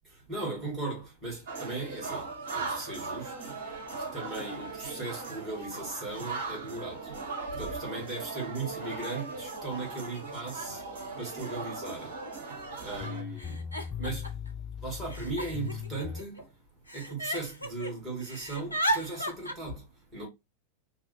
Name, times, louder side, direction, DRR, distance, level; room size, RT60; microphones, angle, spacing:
voice 1, 0.3-3.6 4.0-7.1 7.6-12.3 12.8-13.7 14.0-14.4 14.8-16.5 16.9-20.3, right 3 dB, 20° right, 2.7 m, -38 dB
sound 1, 1.5-13.2, right 3 dB, 55° right, 1.7 m, -38 dB
Giggle, 10.8-10.9 11.8-11.9 12.2-12.7 13.4-14.5 15.1-16.4 16.9-17.9 18.2-19.5, right 1 dB, 90° left, 0.7 m, -34 dB
sound 2, 12.7-12.8 13.0-16.2, left 8 dB, 30° left, 0.5 m, -39 dB
4.6 x 2.9 x 3.7 m
figure-of-eight pair, 90°, 0 cm